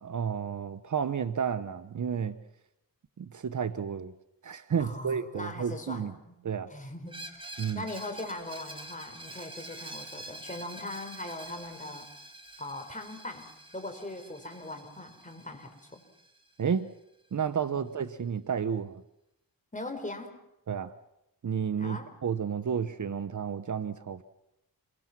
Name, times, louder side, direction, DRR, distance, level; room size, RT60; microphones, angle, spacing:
voice 1, 0.0-2.4 3.2-4.1 4.4-6.1 6.4-6.7 7.6-7.9 16.6-16.9 17.3-19.0 20.7-20.9 21.4-24.2, right 7 dB, 55° right, 1.0 m, -31 dB
voice 2, 4.8-6.4 6.7-7.5 7.7-12.1 12.6-16.0 17.7-17.9 19.7-20.3 21.8-22.1, left 2 dB, 20° left, 4.6 m, -40 dB
Screech, 7.1-16.7, right 1 dB, 15° right, 2.8 m, -47 dB
28.0 x 23.0 x 6.1 m
wide cardioid pair, 90°, 36 cm